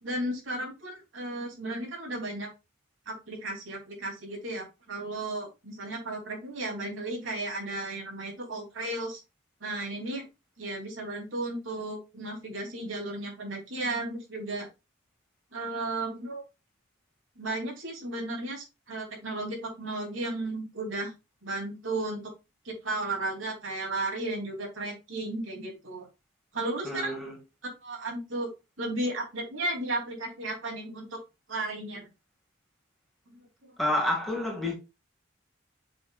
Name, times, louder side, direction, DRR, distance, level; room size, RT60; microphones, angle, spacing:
voice 1, 0.0-2.5 3.1-9.2 9.6-10.2 10.6-14.7 15.5-16.4 17.4-21.1 21.4-22.2 22.6-26.1 26.5-27.2 27.8-28.5 28.8-31.2 31.5-32.1 33.3-33.7, right 2 dB, 85° right, 3.0 m, -34 dB
voice 2, 26.8-27.4 33.8-34.7, left 1 dB, ahead, 2.0 m, -29 dB
6.9 x 6.1 x 2.4 m
head